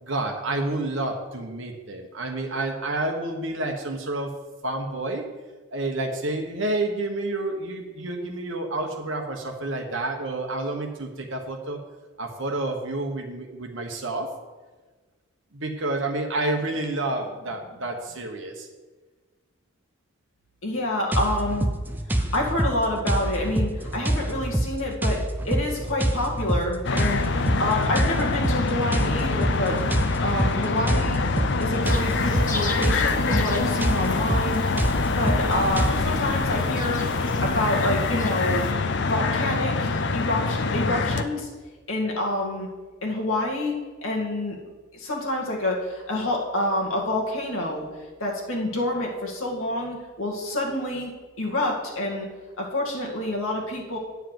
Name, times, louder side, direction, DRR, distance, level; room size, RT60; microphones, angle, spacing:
voice 1, 0.0-4.3 4.6-5.2 5.7-11.8 12.2-14.3 15.5-18.7, right 2 dB, 55° right, 3 dB, 1.2 m, -29 dB
voice 2, 20.6-21.7 22.1-25.2 25.4-27.2 27.6-29.8 30.2-31.2 31.6-34.7 35.2-37.0 37.4-38.6 39.1-41.5 41.9-42.7 43.0-43.8 44.0-44.6 44.9-47.9 48.2-51.1 51.4-52.3 52.6-54.0, left 1 dB, 65° left, -2 dB, 2.0 m, -27 dB
sound 1, 21.1-36.0, right 1 dB, 10° right, 0.5 m, -26 dB
sound 2, 26.8-41.2, left 4 dB, 50° left, 0.5 m, -25 dB
sound 3, 31.8-38.7, left 2 dB, 35° left, 1.1 m, -38 dB
9.2 x 4.8 x 7.6 m, 1.3 s
head